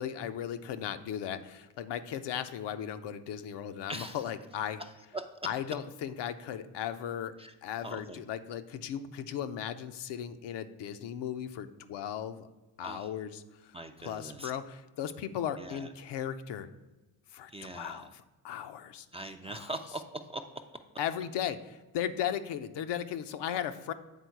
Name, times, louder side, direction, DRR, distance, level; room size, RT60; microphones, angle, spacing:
voice 1, 0.0-4.8 5.4-7.3 7.6-12.5 12.8-16.7 17.3-19.1 19.5-19.7 21.0-23.9, left 9 dB, 60° left, 10 dB, 0.6 m, -37 dB
voice 2, 4.8-5.2 7.4-7.5 7.8-8.2 12.8-13.1 13.7-14.5 15.6-15.9 17.5-18.0 19.1-20.4, right 1 dB, 15° right, 5 dB, 0.4 m, -41 dB
8.3 x 3.7 x 4.6 m, 1.1 s
hypercardioid pair, 55°, 47 cm